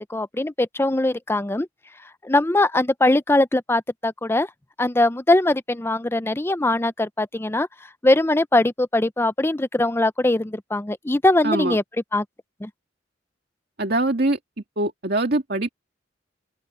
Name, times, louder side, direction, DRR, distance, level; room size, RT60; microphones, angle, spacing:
voice 1, 0.1-1.7 2.2-4.5 4.8-7.7 8.0-11.8 12.1-12.2 12.6-12.7, left 2 dB, 15° left, 0.5 m, -21 dB
voice 2, 11.4-11.8 13.8-14.4 14.8-15.7, right 2 dB, 55° right, 2.2 m, -23 dB
open air
head